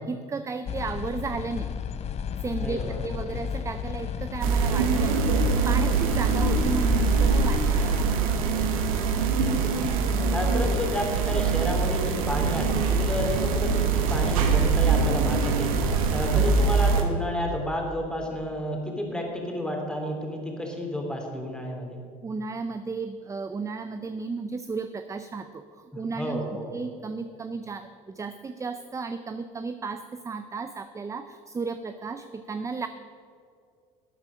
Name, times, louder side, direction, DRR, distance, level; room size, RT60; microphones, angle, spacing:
voice 1, 0.0-1.7 2.4-5.3 5.7-8.3 10.1-10.3 16.4-16.5 22.2-26.4 26.7-32.9, right 4 dB, 20° right, 10 dB, 0.5 m, -34 dB
sound 1, 0.7-8.1, left 8 dB, 40° left, 0.6 m, -33 dB
voice 2, 2.6-3.3 9.4-9.9 10.3-22.0 25.9-26.7, left 1 dB, 5° left, 0 dB, 2.9 m, -31 dB
sound 2, 4.4-17.0, right 4 dB, 85° right, 1.4 m, -23 dB
12.5 x 8.4 x 6.2 m, 2.3 s
supercardioid pair, 90°, 17 cm